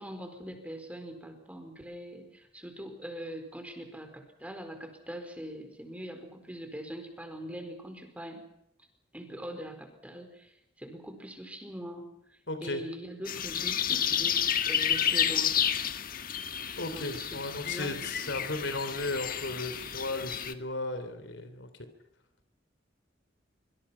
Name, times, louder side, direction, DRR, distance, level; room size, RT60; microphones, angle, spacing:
voice 1, 0.0-8.4 9.1-15.5 16.9-18.5, equal, 5° right, 6 dB, 4.6 m, -42 dB
voice 2, 12.5-12.8 16.8-21.7, left 2 dB, 70° left, 9 dB, 3.4 m, -35 dB
sound 1, 13.3-20.5, left 9 dB, 50° left, 1.5 m, -30 dB
26.0 x 25.0 x 5.9 m, 0.81 s
head